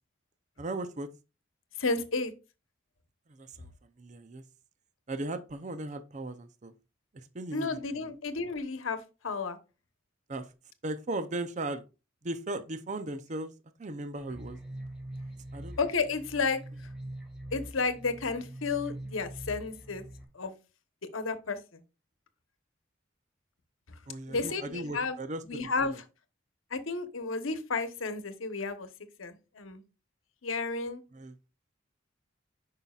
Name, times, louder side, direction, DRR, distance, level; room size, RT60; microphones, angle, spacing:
voice 1, 0.6-1.1 3.3-3.7 4.0-4.4 5.1-6.7 7.1-8.1 10.3-10.5 10.8-11.8 12.2-13.5 13.8-14.6 15.5-15.8 24.1-26.0 31.1-31.4, right 2 dB, 35° right, 0.6 m, -37 dB
voice 2, 1.8-2.3 7.5-9.6 15.8-16.6 17.5-20.0 20.3-20.5 21.1-21.6 24.3-25.2 25.5-25.9 26.7-28.9 29.2-29.8 30.4-31.0, left 4 dB, 85° left, 1.0 m, -32 dB
sound 1, 14.2-20.2, right 1 dB, 5° right, 1.7 m, -43 dB
9.2 x 5.7 x 2.4 m
head